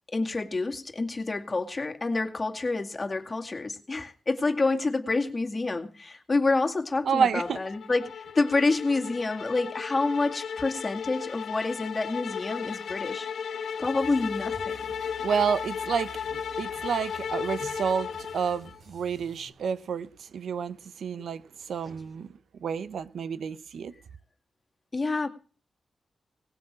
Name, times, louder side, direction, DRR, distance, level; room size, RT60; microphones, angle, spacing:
voice 1, 0.1-13.3 13.8-14.8 24.9-25.3, left 3 dB, 25° left, 2.2 m, -28 dB
voice 2, 7.1-7.6 15.2-21.4 21.7-22.3 22.6-23.9, right 6 dB, 90° right, 0.7 m, -29 dB
sound 1, 7.5-18.8, left 7 dB, 85° left, 1.0 m, -35 dB
sound 2, 14.0-19.5, right 1 dB, 70° right, 4.5 m, -51 dB
19.0 x 7.8 x 7.5 m
wide cardioid pair, 140°, 0 cm